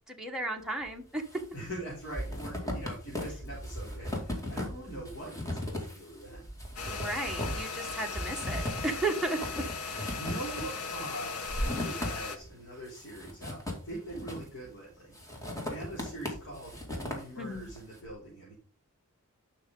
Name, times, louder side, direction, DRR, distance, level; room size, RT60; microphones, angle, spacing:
voice 1, 0.1-1.3 6.9-9.4 9.8-10.1 17.4-17.7, right 2 dB, ahead, 0 dB, 1.3 m, -34 dB
sound 1, 0.9-1.5 1.7-12.5 12.9-14.7 15.1-17.8, left 1 dB, 15° left, 2.3 m, -38 dB
voice 2, 1.5-6.5 10.1-18.5, right 1 dB, 55° left, -6 dB, 3.4 m, -41 dB
sound 2, 6.8-12.4, left 5 dB, 85° left, 1.1 m, -38 dB
11.5 x 5.8 x 3.8 m, 0.41 s
head